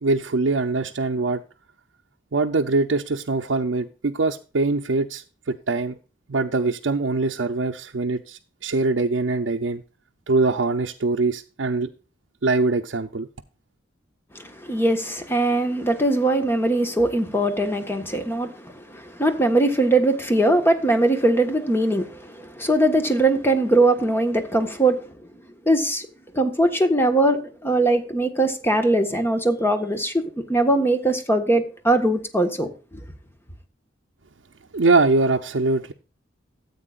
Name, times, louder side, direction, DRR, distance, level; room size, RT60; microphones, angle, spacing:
voice 1, 0.0-1.4 2.3-6.0 6.3-9.8 10.3-11.9 12.4-13.3 34.7-35.9, right 3 dB, 75° right, 0.6 m, -23 dB
voice 2, 14.3-25.1 25.6-26.1 26.3-33.0, right 1 dB, 15° left, 1.4 m, -21 dB
13.5 x 8.4 x 2.4 m
head